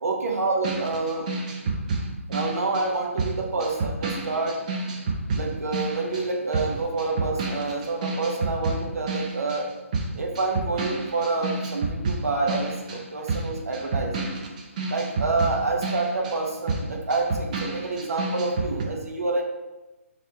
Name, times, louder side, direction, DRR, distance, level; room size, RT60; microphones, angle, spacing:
voice 1, 0.0-1.3 2.3-4.6 5.3-9.7 10.1-14.4 14.9-19.4, right 3 dB, 85° right, 2 dB, 0.8 m, -28 dB
sound 1, 0.6-9.7 9.9-18.8, right 3 dB, 30° right, 0.5 m, -30 dB
3.2 x 2.5 x 4.3 m, 1.1 s
hypercardioid pair, 160°, 8 cm